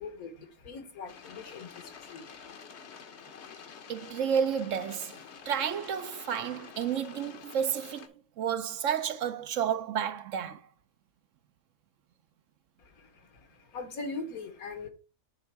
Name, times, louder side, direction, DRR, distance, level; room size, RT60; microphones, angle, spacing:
voice 1, 0.0-2.5 12.8-14.9, left 3 dB, 80° left, 1.8 m, -42 dB
sound 1, 1.1-8.1, left 6 dB, 55° left, 1.0 m, -48 dB
voice 2, 3.9-5.2 5.5-10.6, right 8 dB, 65° right, 0.9 m, -31 dB
10.5 x 3.5 x 4.6 m
omnidirectional pair, 1.5 m